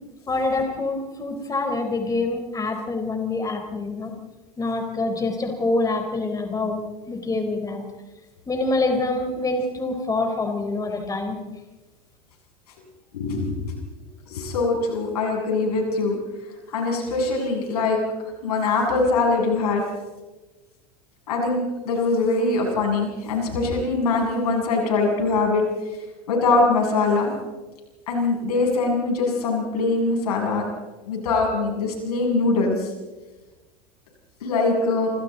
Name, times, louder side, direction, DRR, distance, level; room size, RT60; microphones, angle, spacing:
voice 1, 0.3-4.1 4.6-7.8 8.5-11.4, left 2 dB, 20° left, 4 dB, 4.1 m, -26 dB
voice 2, 13.1-13.6 14.3-16.2 16.7-18.0 18.4-19.8 21.3-25.6 26.3-27.3 28.1-30.6 31.1-32.9 34.4-35.1, left 3 dB, 80° left, 0 dB, 7.8 m, -22 dB
27.5 x 27.0 x 4.1 m, 1.2 s
hypercardioid pair, 90°, 20 cm